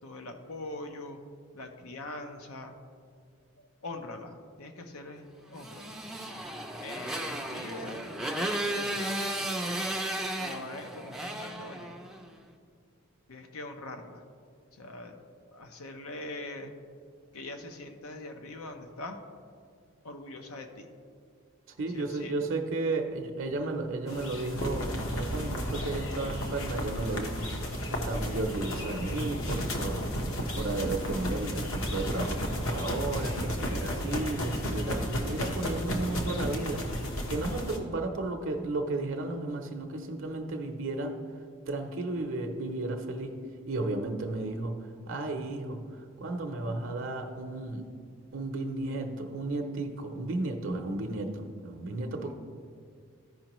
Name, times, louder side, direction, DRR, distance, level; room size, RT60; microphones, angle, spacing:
voice 1, 0.0-1.2 1.5-2.7 3.6-6.0 6.8-8.0 8.4-9.0 10.4-12.0 13.3-14.2 14.7-16.7 17.3-19.2 20.0-20.9 21.9-22.3 52.2-52.3, left 2 dB, 85° left, 5 dB, 0.7 m, -42 dB
Motorcycle, 5.6-12.3, right 1 dB, ahead, 0.4 m, -34 dB
voice 2, 21.8-27.4 27.9-30.1 30.6-36.9 37.3-41.1 41.7-43.4 43.7-47.9 48.3-52.3, right 2 dB, 60° right, 4 dB, 0.6 m, -33 dB
sound 1, 24.1-37.8, equal, 70° left, 1.1 m, -33 dB
14.0 x 5.3 x 3.0 m, 2.2 s
head